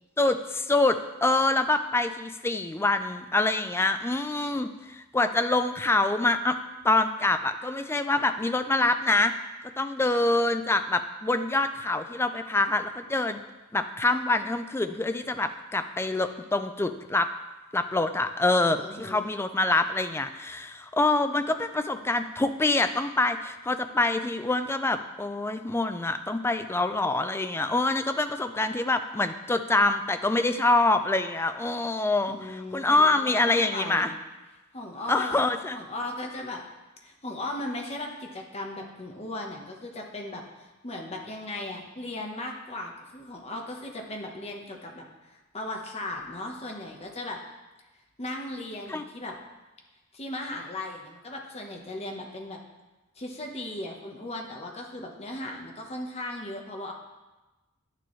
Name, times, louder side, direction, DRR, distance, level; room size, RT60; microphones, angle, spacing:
voice 1, 0.2-6.6 6.8-9.3 9.8-13.4 13.7-17.3 17.7-34.1 35.1-35.8 48.9-49.0, left 2 dB, 10° left, 9 dB, 0.3 m, -25 dB
voice 2, 18.7-19.3 32.3-34.1 34.7-35.4 35.7-36.6 37.0-47.4 48.2-49.4 50.1-52.6 53.2-56.9, left 1 dB, 30° left, 1 dB, 1.0 m, -37 dB
10.5 x 6.8 x 3.2 m, 1.1 s
head